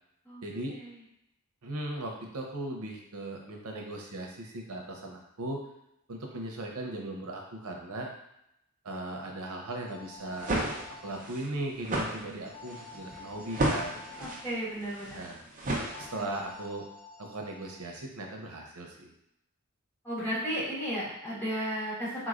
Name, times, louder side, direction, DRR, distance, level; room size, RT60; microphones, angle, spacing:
voice 1, 0.4-0.8 1.6-5.6 6.1-8.1 8.8-10.5 11.0-14.0 15.1-15.4 16.0-16.9 17.2-19.1, right 1 dB, 90° right, 1 dB, 0.7 m, -38 dB
sound 1, 9.2-11.2 12.4-14.4 15.9-17.8, left 5 dB, 45° left, 1.0 m, -49 dB
sound 2, 10.2-16.5, right 1 dB, 35° right, 0.7 m, -33 dB
voice 2, 14.2-15.2 16.2-16.3 20.0-22.3, equal, 10° left, -9 dB, 1.4 m, -34 dB
3.9 x 3.0 x 2.5 m, 0.79 s
head